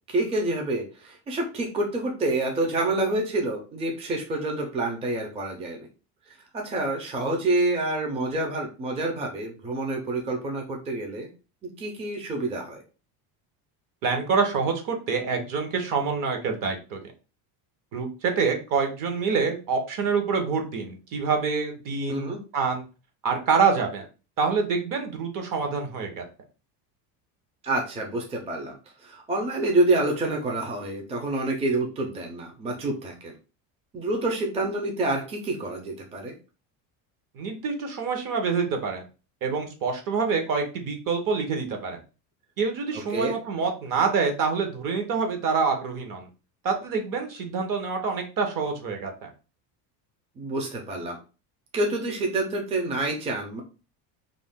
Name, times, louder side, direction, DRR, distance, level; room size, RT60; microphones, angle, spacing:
voice 1, 0.1-5.9 6.3-11.3 11.6-12.8 22.1-22.4 27.6-28.7 29.0-33.3 33.9-36.3 42.9-43.4 50.4-51.2 51.7-53.6, right 2 dB, 15° right, 2 dB, 0.4 m, -27 dB
voice 2, 14.0-17.1 17.9-22.8 23.2-24.0 24.4-26.2 37.3-39.0 39.4-42.0 42.6-46.3 46.6-49.3, right 5 dB, 50° right, 4 dB, 0.9 m, -26 dB
2.5 x 2.1 x 3.5 m, 0.33 s
cardioid pair, 130°, 42 cm